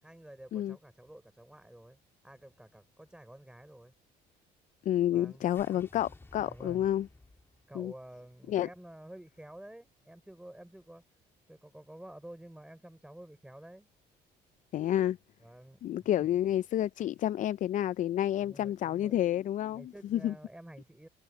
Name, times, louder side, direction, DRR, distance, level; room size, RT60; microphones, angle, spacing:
voice 1, 0.0-3.9 5.1-5.8 6.4-6.9 7.7-11.0 11.5-13.9 15.4-16.3 18.4-19.2 19.7-21.1, right 1 dB, 5° right, 5.5 m, -50 dB
voice 2, 4.9-7.1 7.8-7.9 8.5-8.7 14.7-15.2 15.8-20.3, left 12 dB, 50° left, 0.4 m, -29 dB
sound 1, 5.4-9.7, left 2 dB, 15° left, 2.8 m, -58 dB
cardioid pair, 110°, 17 cm